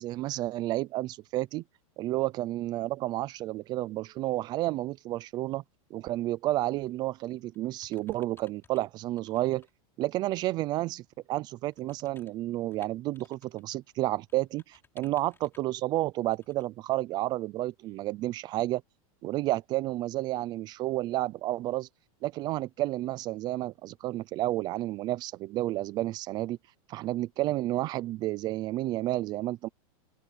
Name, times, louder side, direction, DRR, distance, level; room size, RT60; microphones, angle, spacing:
voice 1, 0.0-1.6 2.0-5.6 5.9-9.7 10.0-11.0 11.3-18.8 19.2-21.9 22.2-26.6 26.9-29.7, right 16 dB, 20° right, 0.4 m, -31 dB
sound 1, 6.8-7.1 7.5-8.8 9.2-9.7 10.2-10.3 11.7-13.6 13.9-15.7 16.3-16.6 16.9-17.0, left 5 dB, 10° left, 6.3 m, -61 dB
open air
supercardioid pair, 165°, 19 cm